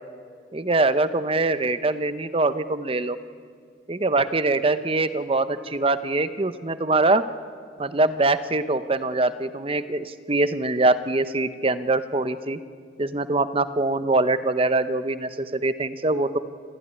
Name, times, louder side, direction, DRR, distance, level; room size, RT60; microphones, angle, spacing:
voice 1, 0.5-3.2 3.9-7.2 7.8-12.6 13.0-16.4, right 2 dB, 30° right, 12 dB, 0.8 m, -23 dB
27.5 x 14.5 x 9.8 m, 2.1 s
head